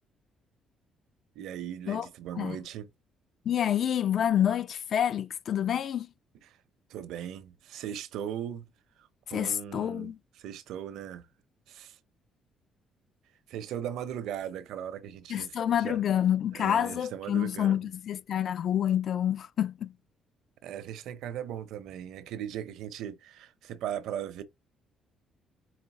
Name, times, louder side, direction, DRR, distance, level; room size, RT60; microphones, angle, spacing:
voice 1, 1.4-2.9 6.4-6.6 6.9-8.7 9.0-11.3 11.7-12.0 13.5-16.0 16.5-17.9 20.6-24.4, right 10 dB, 80° right, 0.7 m, -38 dB
voice 2, 3.5-6.1 9.3-10.2 15.3-19.9, left 10 dB, 55° left, 0.4 m, -28 dB
4.9 x 3.0 x 2.9 m
cardioid pair, 105°, 0 cm